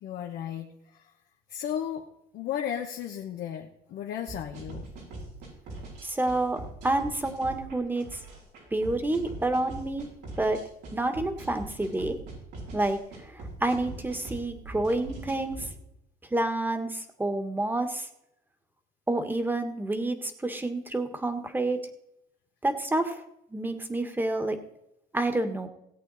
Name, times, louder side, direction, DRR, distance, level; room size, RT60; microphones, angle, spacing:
voice 1, 0.0-1.1 1.5-2.1 2.3-4.8, left 9 dB, 75° left, 1 dB, 1.2 m, -34 dB
sound 1, 4.3-15.7, right 2 dB, 85° right, 5.4 m, -42 dB
voice 2, 6.0-8.2 8.7-10.1 10.4-10.6 10.9-12.2 12.7-15.7 16.3-18.1 19.1-21.8 22.6-23.2 23.5-24.6 25.1-25.7, right 2 dB, 10° right, 7 dB, 1.6 m, -29 dB
18.0 x 8.4 x 4.2 m, 0.82 s
cardioid pair, 110°, 17 cm